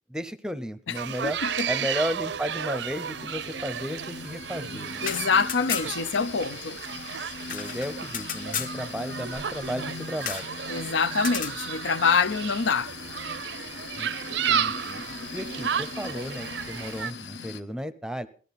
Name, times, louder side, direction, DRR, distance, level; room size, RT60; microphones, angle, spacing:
voice 1, 0.1-1.4 1.7-5.0 7.5-10.5 13.9-14.1 14.5-15.0 15.3-18.3, equal, 5° right, 0.6 m, -34 dB
sound 1, 0.9-17.1, right 8 dB, 75° right, 0.6 m, -33 dB
voice 2, 1.2-1.7 5.0-6.8 10.7-12.9, left 5 dB, 90° left, 0.7 m, -25 dB
sound 2, 1.9-17.6, left 4 dB, 75° left, 1.0 m, -40 dB
sound 3, 5.0-6.1 6.4-6.5 6.8-8.8 10.2-10.5 11.2-11.6, left 7 dB, 45° left, 1.0 m, -34 dB
18.0 x 13.5 x 4.1 m
head